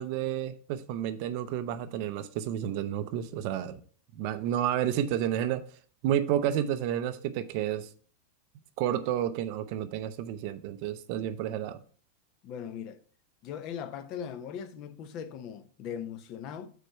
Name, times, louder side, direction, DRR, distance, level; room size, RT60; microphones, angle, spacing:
voice 1, 0.0-3.8 4.2-5.6 6.0-7.9 8.8-11.8, right 10 dB, 45° right, 0.5 m, -30 dB
voice 2, 12.4-13.0 13.4-16.7, left 8 dB, 35° left, 0.6 m, -39 dB
6.5 x 4.3 x 5.5 m
supercardioid pair, 165°, 0 cm